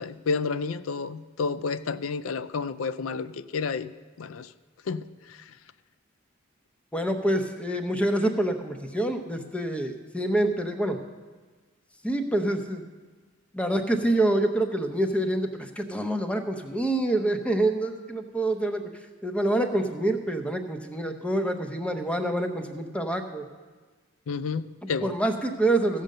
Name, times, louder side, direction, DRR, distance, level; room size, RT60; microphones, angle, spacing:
voice 1, 0.0-3.9 4.2-4.5 4.9-5.1 24.3-25.1, left 5 dB, 80° left, 14 dB, 0.4 m, -30 dB
voice 2, 6.9-11.0 12.0-12.8 13.5-18.9 19.2-23.4 25.0-26.0, right 1 dB, 5° left, 6 dB, 0.8 m, -26 dB
15.5 x 5.1 x 6.6 m, 1.3 s
head